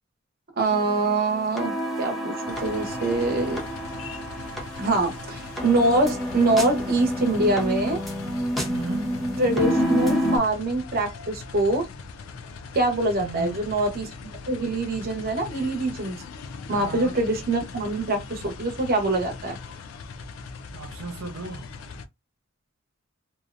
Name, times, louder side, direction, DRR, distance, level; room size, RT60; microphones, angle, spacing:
voice 1, 0.5-3.6 4.8-8.0 9.4-11.9 12.7-16.2 16.7-19.6, right 2 dB, 50° right, 0.8 m, -24 dB
sound 1, 0.7-10.4, equal, ahead, 0.7 m, -28 dB
sound 2, 2.5-22.1, left 4 dB, 75° left, 0.4 m, -40 dB
voice 2, 8.7-9.2 13.2-13.6 16.7-17.1 20.7-21.6, right 3 dB, 75° right, 0.5 m, -35 dB
2.7 x 2.0 x 2.4 m
head